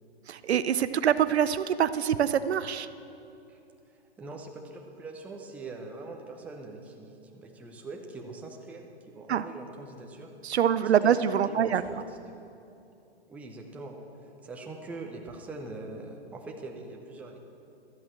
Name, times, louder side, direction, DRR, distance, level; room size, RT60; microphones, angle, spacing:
voice 1, 0.3-2.9 9.3-9.4 10.4-11.8, right 9 dB, 75° right, 14 dB, 0.6 m, -25 dB
voice 2, 4.2-10.3 10.8-12.2 13.3-14.0 14.4-17.4, right 3 dB, 5° right, 1 dB, 0.6 m, -42 dB
13.0 x 8.1 x 7.4 m, 2.7 s
hypercardioid pair, 140°, 33 cm